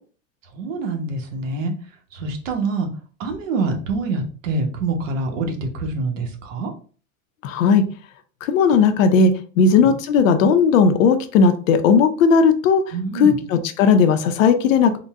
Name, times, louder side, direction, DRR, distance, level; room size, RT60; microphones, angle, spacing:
voice 1, 0.5-1.7 2.1-2.9 3.2-6.7 9.6-9.7 12.9-13.4, right 3 dB, 70° right, 4 dB, 1.0 m, -25 dB
voice 2, 7.4-7.8 8.5-9.3 9.6-12.8 13.2-15.0, left 5 dB, 75° left, 8 dB, 0.7 m, -16 dB
3.8 x 2.2 x 3.5 m, 0.40 s
supercardioid pair, 170°, 39 cm